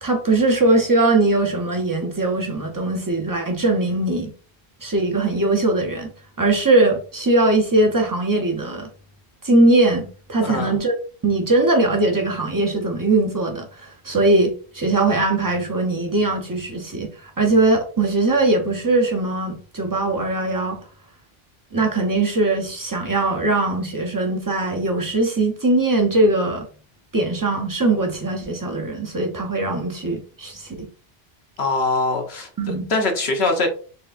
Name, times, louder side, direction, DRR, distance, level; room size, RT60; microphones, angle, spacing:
voice 1, 0.0-4.3 4.8-6.1 6.4-8.9 9.4-10.9 11.2-20.8 21.7-26.7 27.1-30.9 32.6-32.9, right 2 dB, 20° right, 0.7 m, -20 dB
voice 2, 10.4-10.8 31.6-33.7, left 2 dB, 80° left, 1.2 m, -23 dB
4.2 x 3.2 x 2.5 m
omnidirectional pair, 1.0 m